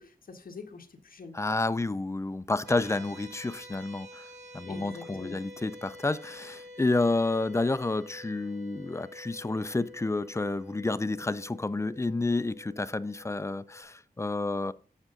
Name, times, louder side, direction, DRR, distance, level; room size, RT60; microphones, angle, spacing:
voice 1, 0.0-1.4 4.7-5.4, left 4 dB, 65° left, 1.4 m, -45 dB
voice 2, 1.3-4.2 4.5-14.7, left 2 dB, 20° left, 0.4 m, -30 dB
sound 1, 2.7-13.8, left 1 dB, 70° right, 4.7 m, -49 dB
7.7 x 7.3 x 3.8 m
wide cardioid pair, 125°, 16 cm